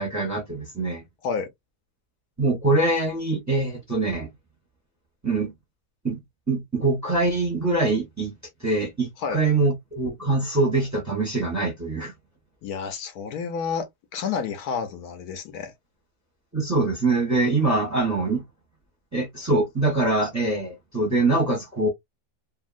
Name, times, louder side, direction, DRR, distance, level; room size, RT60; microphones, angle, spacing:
voice 1, 0.0-1.0 2.4-4.3 5.2-5.5 6.0-6.2 6.5-8.3 8.6-12.1 16.5-18.4 19.1-21.9, right 2 dB, 10° right, 1.0 m, -24 dB
voice 2, 12.6-15.7, left 6 dB, 75° left, 1.1 m, -30 dB
2.7 x 2.7 x 2.4 m
omnidirectional pair, 1.7 m